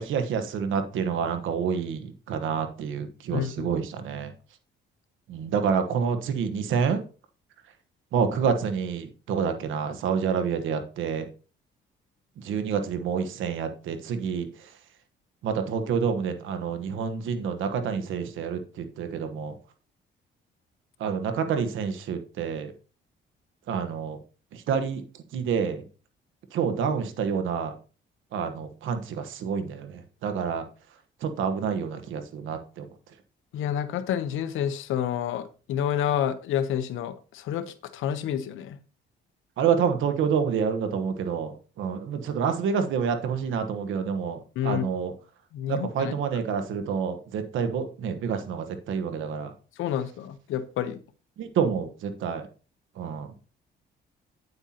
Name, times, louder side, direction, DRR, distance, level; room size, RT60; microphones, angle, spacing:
voice 1, 0.0-4.3 5.3-7.0 8.1-11.2 12.4-14.7 15.4-19.5 21.0-22.7 23.7-24.2 24.5-25.8 26.5-27.7 28.3-30.6 31.2-32.9 39.6-45.1 45.7-49.5 51.4-52.5 53.0-53.3, right 6 dB, 85° right, 1.2 m, -28 dB
voice 2, 3.3-3.7 33.5-38.8 44.6-44.8 45.5-46.1 49.8-51.0, left 9 dB, 85° left, 0.9 m, -29 dB
9.0 x 8.0 x 2.9 m
cardioid pair, 90°, 20 cm